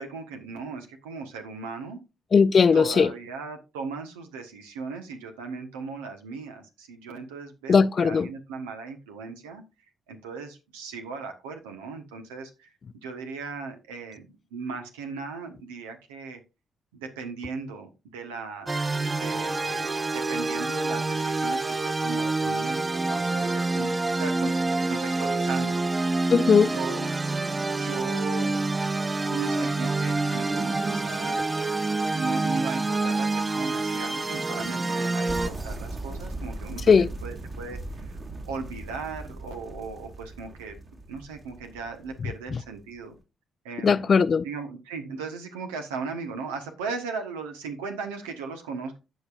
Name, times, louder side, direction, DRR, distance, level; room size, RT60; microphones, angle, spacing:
voice 1, 0.0-2.0 2.7-9.6 10.1-16.4 16.9-18.7 19.0-25.8 26.7-27.1 27.8-28.6 29.2-31.4 32.1-38.2 38.5-40.8 41.1-43.1 43.6-44.0 44.4-49.0, right 4 dB, 85° right, 1.2 m, -37 dB
voice 2, 2.3-3.1 7.7-8.3 26.3-26.7 36.9-37.1 42.5-42.6 43.8-44.4, left 5 dB, 45° left, 0.5 m, -18 dB
sound 1, 18.7-35.5, right 3 dB, 25° right, 0.7 m, -27 dB
sound 2, 35.3-43.0, right 2 dB, 45° right, 2.5 m, -39 dB
15.5 x 5.2 x 2.5 m
hypercardioid pair, 45°, 0 cm